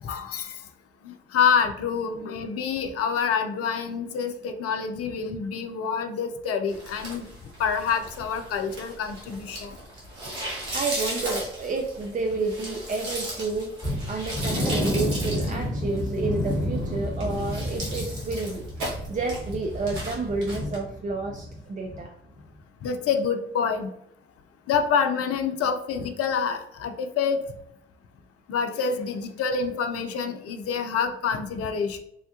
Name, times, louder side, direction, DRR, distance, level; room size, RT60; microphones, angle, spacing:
voice 1, 0.0-0.6 1.0-7.3 7.6-9.7 22.8-23.9 24.7-27.4 28.5-32.0, left 6 dB, 55° left, 7 dB, 0.5 m, -27 dB
sound 1, 6.7-20.8, right 1 dB, 80° right, 1.0 m, -36 dB
voice 2, 10.7-18.6 19.1-22.1, right 3 dB, 25° right, 1 dB, 0.4 m, -30 dB
sound 2, 13.8-21.6 21.8-22.0 22.4-22.5, equal, 5° left, 1.1 m, -30 dB
3.3 x 2.2 x 2.8 m, 0.78 s
hypercardioid pair, 45°, 29 cm